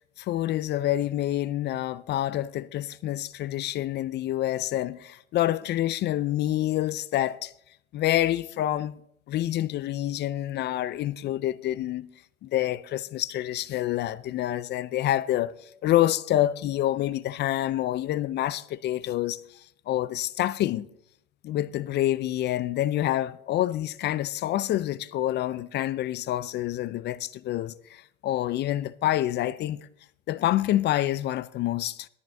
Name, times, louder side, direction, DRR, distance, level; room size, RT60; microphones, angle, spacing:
voice 1, 0.2-7.5 7.9-9.0 9.3-12.1 12.4-15.5 15.8-19.4 19.9-20.9 21.4-29.9 30.3-32.1, left 13 dB, 25° left, 0.4 m, -27 dB
18.0 x 13.5 x 3.4 m
hypercardioid pair, 110°, 41 cm